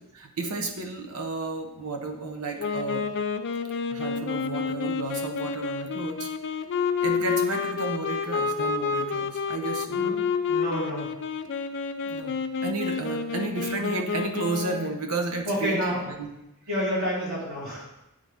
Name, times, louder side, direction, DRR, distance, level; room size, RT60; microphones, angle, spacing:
voice 1, 0.1-3.1 3.9-6.3 7.0-10.0 12.1-16.3, right 3 dB, 80° right, 4 dB, 0.9 m, -32 dB
Wind instrument woodwind instrument, 2.6-15.0, left 5 dB, 55° left, 0.4 m, -29 dB
voice 2, 10.5-11.1 15.5-16.0 16.7-17.8, equal, 60° right, -7 dB, 2.6 m, -28 dB
8.7 x 4.0 x 3.4 m, 0.91 s
head